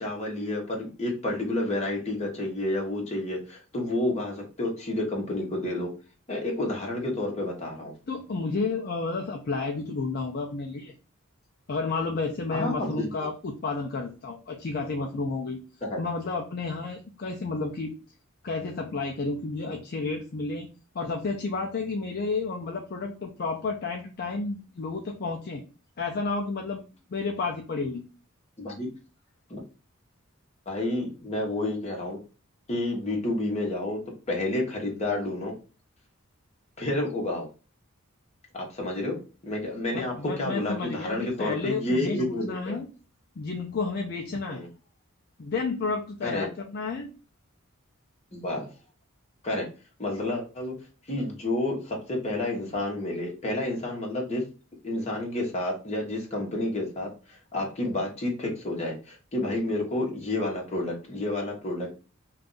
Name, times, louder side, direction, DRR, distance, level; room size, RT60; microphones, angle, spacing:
voice 1, 0.0-5.9 6.3-7.9 12.5-13.1 15.8-16.0 28.6-28.9 29.5-29.6 30.7-32.2 32.7-34.0 34.3-35.5 36.8-37.5 38.5-39.2 39.4-42.8 44.5-44.7 46.2-46.5 48.3-48.7 49.4-49.7 50.0-50.7 51.1-54.4 54.8-61.9, left 1 dB, 30° left, -1 dB, 1.0 m, -30 dB
voice 2, 8.1-10.9 11.7-15.6 16.0-17.9 18.4-20.7 20.9-25.6 26.0-26.8 27.1-28.0 39.9-42.9 43.4-44.6 45.4-47.1, left 3 dB, 45° left, 2 dB, 0.4 m, -31 dB
2.6 x 2.4 x 3.8 m, 0.34 s
head